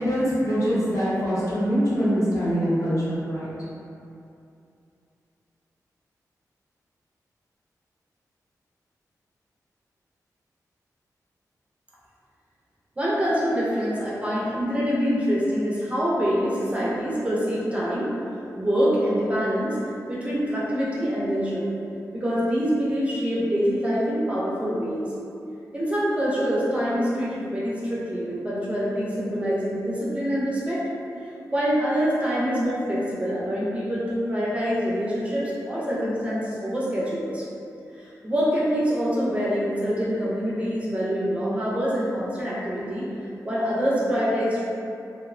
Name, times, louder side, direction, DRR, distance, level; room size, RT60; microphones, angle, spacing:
voice 1, 0.0-3.5, equal, 55° left, -9 dB, 0.6 m, -24 dB
voice 2, 13.0-18.1 18.6-19.8 20.1-21.7 22.1-25.1 25.7-30.8 31.5-37.4 37.9-43.1 43.4-44.6, equal, 20° right, -7 dB, 0.4 m, -25 dB
2.7 x 2.0 x 2.4 m, 2.6 s
wide cardioid pair, 175°, 7 cm